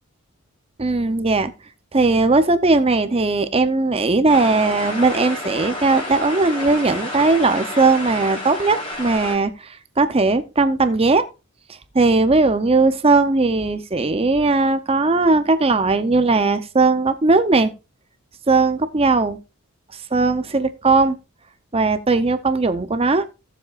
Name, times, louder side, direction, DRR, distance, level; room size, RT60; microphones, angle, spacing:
voice 1, 0.8-1.5 1.9-9.5 10.0-11.2 11.9-17.7 18.5-19.4 20.1-21.2 21.7-23.2, right 3 dB, 25° right, 0.7 m, -18 dB
sound 1, 4.3-9.4, left 1 dB, 25° left, 4.3 m, -30 dB
17.0 x 7.4 x 2.5 m
head